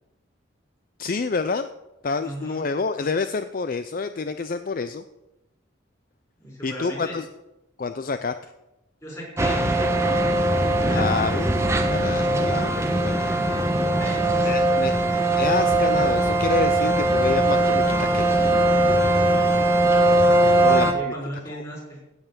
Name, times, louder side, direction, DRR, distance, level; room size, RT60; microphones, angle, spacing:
voice 1, 1.0-1.7 2.0-5.0 6.6-7.3 7.8-8.5 10.9-13.6 14.4-18.4 20.6-21.1 21.5-21.6, left 4 dB, 45° left, 10 dB, 0.4 m, -28 dB
voice 2, 2.2-2.7 6.4-7.2 9.0-10.1 10.8-11.3 13.9-14.5 14.9-15.3 19.2-19.6 20.5-22.0, equal, 15° left, -3 dB, 5.7 m, -37 dB
sound 1, 9.4-20.9, right 1 dB, 15° right, 1.1 m, -20 dB
16.5 x 5.6 x 7.4 m, 0.97 s
head